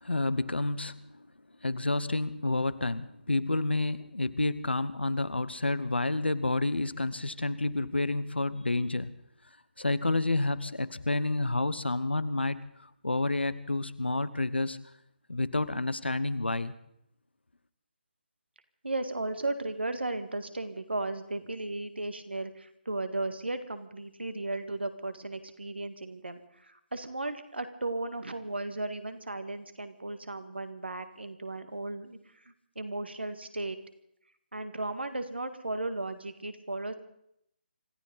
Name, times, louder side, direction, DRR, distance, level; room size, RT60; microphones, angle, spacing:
voice 1, 0.0-1.0 1.6-9.1 9.8-14.8 15.3-16.7, left 2 dB, 80° left, 15 dB, 1.0 m, -29 dB
voice 2, 18.8-33.8 34.5-36.9, right 2 dB, 80° right, 9 dB, 1.8 m, -35 dB
26.5 x 14.0 x 4.0 m, 0.74 s
figure-of-eight pair, 145°, 6 cm